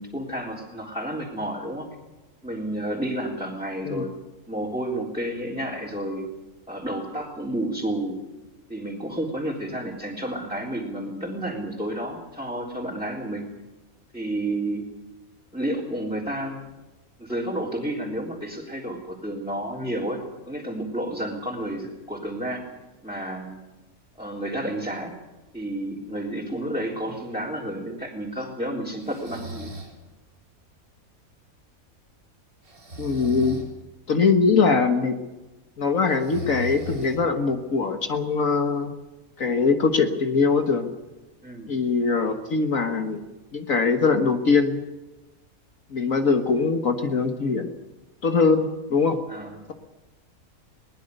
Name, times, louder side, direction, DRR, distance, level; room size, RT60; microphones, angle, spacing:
voice 1, 0.0-1.9 2.4-4.1 4.5-6.2 6.7-8.2 8.7-13.4 14.1-14.9 15.5-16.6 17.2-20.2 20.5-22.6 23.0-23.6 24.2-25.1 25.5-29.7 41.4-41.7 49.3-49.6, right 1 dB, 5° right, -4 dB, 3.7 m, -31 dB
Breathing, 29.0-30.0 32.6-33.7 36.1-37.5, right 1 dB, 80° right, 4.5 m, -37 dB
voice 2, 33.0-33.6 34.1-35.2 35.8-38.9 39.4-40.9 41.7-43.2 43.5-44.8 45.9-47.7 48.2-49.2, left 4 dB, 65° left, 5 dB, 1.9 m, -22 dB
22.5 x 20.0 x 6.7 m, 1.1 s
omnidirectional pair, 1.5 m